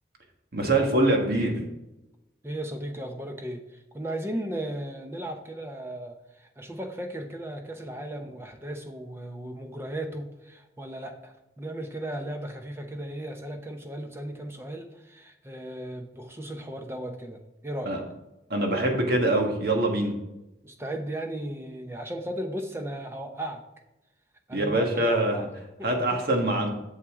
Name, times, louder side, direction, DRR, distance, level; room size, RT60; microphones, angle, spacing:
voice 1, 0.5-1.5 17.8-18.0 18.5-20.1 24.5-25.5 25.8-26.7, right 1 dB, 55° right, 2 dB, 1.5 m, -24 dB
voice 2, 2.4-18.0 20.6-23.6 24.5-25.5 25.8-25.9, right 1 dB, 15° right, 5 dB, 0.8 m, -36 dB
8.0 x 7.1 x 3.7 m, 0.94 s
head